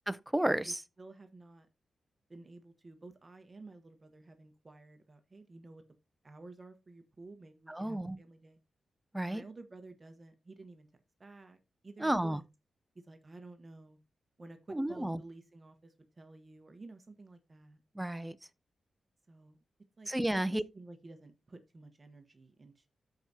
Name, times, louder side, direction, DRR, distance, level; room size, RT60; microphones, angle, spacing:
voice 1, 0.1-0.8 7.7-8.2 9.1-9.4 12.0-12.4 14.7-15.2 18.0-18.4 20.1-20.6, right 1 dB, 10° right, 0.6 m, -32 dB
voice 2, 0.6-1.7 2.3-5.8 6.2-8.6 9.3-10.9 11.2-11.6 11.8-12.4 12.9-14.0 14.4-17.8 19.3-19.6 20.0-20.1 20.5-22.9, right 2 dB, 30° right, 1.2 m, -52 dB
13.5 x 4.8 x 2.8 m
wide cardioid pair, 100°, 0 cm